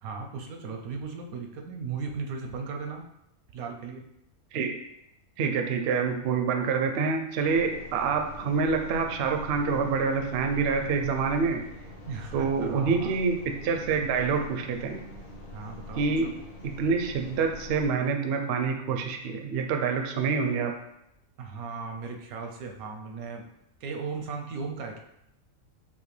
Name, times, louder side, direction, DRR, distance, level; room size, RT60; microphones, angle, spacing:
voice 1, 0.0-3.1 3.5-4.0 12.1-13.1 15.5-16.3 21.4-23.4 23.8-25.0, right 5 dB, 85° right, 3 dB, 1.1 m, -37 dB
voice 2, 5.4-11.6 12.3-15.0 16.0-16.3 16.6-20.7, right 5 dB, 65° right, 5 dB, 0.6 m, -27 dB
sound 1, 7.4-17.9, left 1 dB, 50° left, 1.3 m, -44 dB
5.7 x 2.2 x 3.2 m, 0.82 s
omnidirectional pair, 1.5 m